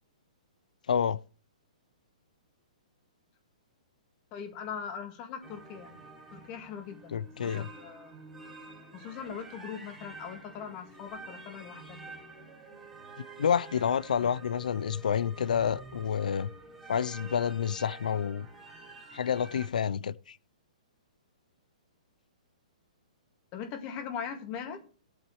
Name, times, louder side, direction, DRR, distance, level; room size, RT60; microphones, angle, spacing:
voice 1, 0.9-1.2 7.1-7.7 13.4-16.5 16.9-18.5 19.1-20.4, left 7 dB, 85° left, 0.5 m, -29 dB
voice 2, 4.3-5.9 6.3-8.2 8.9-12.3 23.5-24.9, left 7 dB, 25° left, 2.0 m, -41 dB
sound 1, 5.4-19.7, right 3 dB, 5° right, 2.5 m, -49 dB
17.5 x 8.7 x 3.1 m
hypercardioid pair, 165°, 4 cm